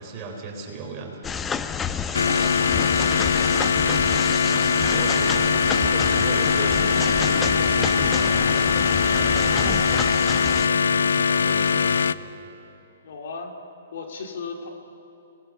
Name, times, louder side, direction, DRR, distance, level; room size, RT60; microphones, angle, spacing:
voice 1, 0.0-1.6 2.3-2.7 3.7-4.0 4.3-12.3, right 3 dB, 25° right, 0 dB, 4.2 m, -37 dB
sound 1, 1.2-10.7, left 6 dB, 15° left, 0.6 m, -29 dB
sound 2, 2.1-12.1, left 6 dB, 85° left, 0.5 m, -21 dB
voice 2, 13.0-13.5 13.9-14.7, left 4 dB, 65° left, 2 dB, 2.5 m, -37 dB
26.5 x 20.0 x 5.7 m, 3.0 s
hypercardioid pair, 145°, 0 cm